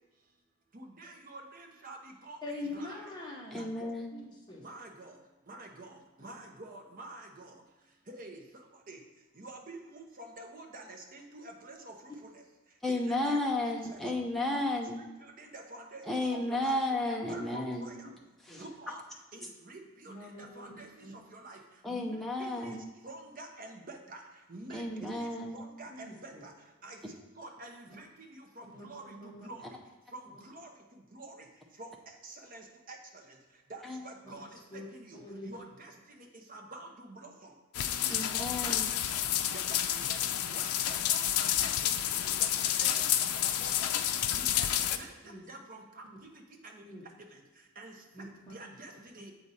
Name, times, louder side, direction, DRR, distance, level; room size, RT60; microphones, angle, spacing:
voice 1, 0.7-3.0 3.5-3.9 4.6-5.1 5.5-7.5 8.1-8.4 8.9-9.0 9.4-12.4 12.9-14.0 14.5-14.6 15.0-16.8 17.1-18.1 18.6-19.0 19.3-21.6 21.9-22.8 23.0-24.2 24.5-26.5 26.8-27.0 27.4-29.6 30.1-30.7 31.1-31.5 31.8-33.0 33.7-37.5 37.8-38.2 38.6-39.0 39.5-40.2 40.5-43.1 43.3-44.0 44.3-45.1 45.5-46.9 47.8-47.9 48.5-49.3, right 2 dB, 40° right, 3 dB, 0.8 m, -48 dB
voice 2, 2.4-3.7 4.1-4.6 18.5-18.6 20.1-20.7 21.0-21.1 25.9-26.4 28.7-29.5 34.7-34.9 35.1-35.5 45.2-45.4 46.1-46.2 46.8-47.0 48.1-48.5, left 2 dB, 20° left, -2 dB, 1.1 m, -44 dB
voice 3, 3.5-4.1 12.8-15.0 16.1-17.9 18.5-18.6 21.8-22.9 24.7-25.6 33.8-34.0 38.1-38.9, left 1 dB, ahead, -1 dB, 0.6 m, -33 dB
sound 1, 37.7-45.0, left 10 dB, 85° left, 0.4 m, -30 dB
7.5 x 4.8 x 4.1 m, 1.1 s
head